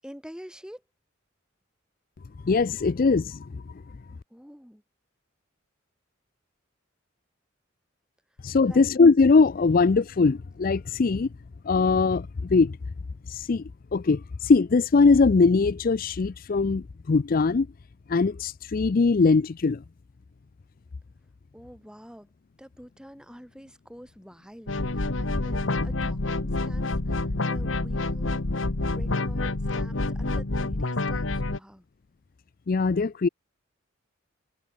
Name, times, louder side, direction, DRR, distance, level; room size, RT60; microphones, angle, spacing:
voice 1, 0.0-0.8 4.3-4.8 8.6-8.9 21.5-22.3 22.6-31.8, equal, 5° right, 7.0 m, -47 dB
voice 2, 2.4-3.6 8.4-11.3 11.6-12.8 13.3-13.6 13.9-17.7 18.1-19.8 32.7-33.3, left 4 dB, 45° left, 0.4 m, -21 dB
sound 1, 24.7-31.6, left 2 dB, 70° left, 1.4 m, -28 dB
head